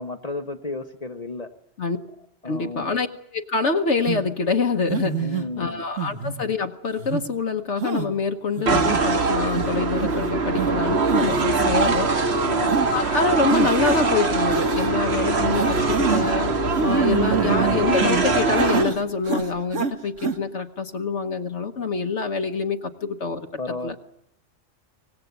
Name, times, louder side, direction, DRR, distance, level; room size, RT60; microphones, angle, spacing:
voice 1, 0.0-1.5 2.4-2.9 5.2-5.8 12.3-12.8 23.6-24.0, left 3 dB, 35° left, 7 dB, 1.0 m, -33 dB
voice 2, 2.4-3.1 3.3-12.1 12.9-16.5 16.8-23.5 23.8-23.9, left 4 dB, 70° left, 5 dB, 1.4 m, -25 dB
sound 1, 4.1-4.2 4.9-5.4 6.0-6.4 7.0-7.2 7.8-8.1 8.6-9.0 9.6-9.7 10.0-10.2 10.6-10.7 11.1-11.4 11.8-11.9 12.7-12.9 13.5-14.0 14.5-14.9 15.5-16.3 16.7-18.2 18.6-19.0 19.2-19.9 20.2-20.3, right 6 dB, 85° right, 2.0 m, -26 dB
sound 2, 8.7-18.8, right 3 dB, 60° right, 1.8 m, -22 dB
25.0 x 19.0 x 8.1 m, 0.75 s
omnidirectional pair, 1.3 m